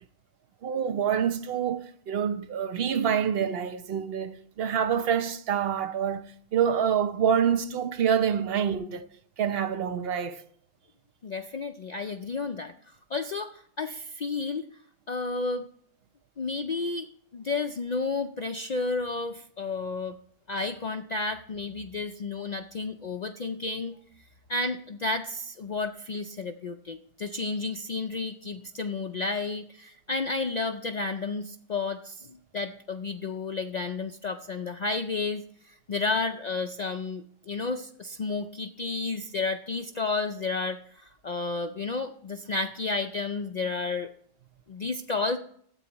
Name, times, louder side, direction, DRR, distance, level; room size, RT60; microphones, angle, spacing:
voice 1, 0.6-6.3 6.5-9.1 9.4-10.4, right 8 dB, 55° right, 0.9 m, -26 dB
voice 2, 11.2-12.7 13.1-14.7 15.1-15.7 16.4-17.1 17.3-20.1 20.5-24.0 24.5-44.1 44.7-45.4, left 3 dB, 65° left, 0.4 m, -31 dB
13.0 x 8.5 x 3.0 m
omnidirectional pair, 1.3 m